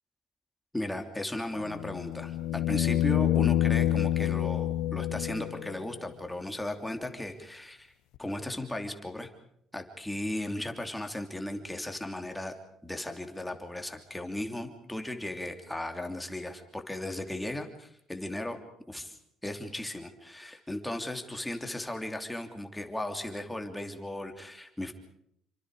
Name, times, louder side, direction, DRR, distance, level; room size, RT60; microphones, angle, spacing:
voice 1, 0.7-7.9 8.2-9.3 9.7-12.5 12.8-18.6 18.9-24.9, left 1 dB, 5° left, 5 dB, 3.1 m, -36 dB
sound 1, 1.6-5.8 8.2-8.3, left 12 dB, 85° left, 1.3 m, -27 dB
29.0 x 25.0 x 5.0 m, 0.71 s
cardioid pair, 120°, 0 cm